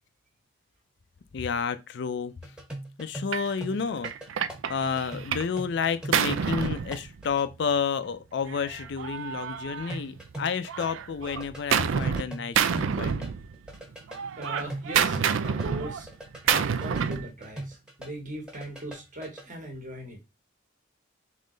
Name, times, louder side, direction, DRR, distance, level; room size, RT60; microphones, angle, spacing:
voice 1, 1.3-2.3 3.0-4.1 4.7-13.2, left 6 dB, 60° left, 0.4 m, -30 dB
sound 1, 2.4-7.5 9.9-13.3 13.5-18.1 18.3-19.5, right 1 dB, 5° right, 1.1 m, -41 dB
Gunshot gunfire, 3.3-3.5 4.0-5.6 5.8-7.5 8.5-10.3 10.7-12.2 12.5-13.8 14.1-17.3, right 7 dB, 75° right, 0.4 m, -28 dB
voice 2, 14.4-16.1 16.4-20.2, right 1 dB, 40° right, 1.3 m, -39 dB
3.7 x 3.1 x 3.8 m
head